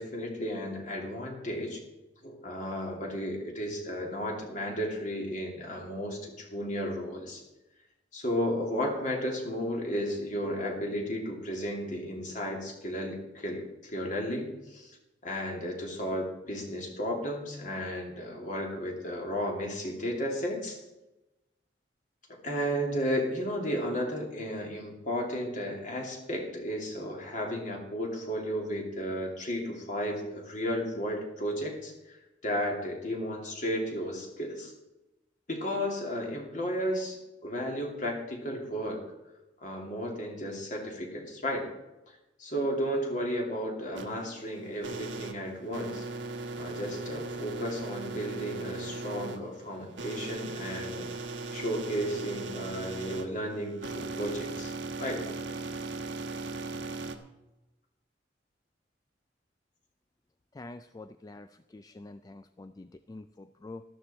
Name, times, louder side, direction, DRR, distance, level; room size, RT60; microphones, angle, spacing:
voice 1, 0.0-1.8 2.2-7.4 8.1-15.0 15.2-20.8 22.4-32.2 32.4-34.7 35.5-39.0 39.6-41.7 42.4-46.1 46.6-51.1 51.5-54.7 55.0-55.3, equal, 45° left, 1 dB, 2.7 m, -33 dB
sound 1, 44.0-57.2, right 3 dB, 80° right, 1.2 m, -38 dB
voice 2, 60.5-63.8, left 2 dB, 20° left, 11 dB, 0.3 m, -46 dB
13.0 x 12.5 x 4.3 m, 1.0 s
head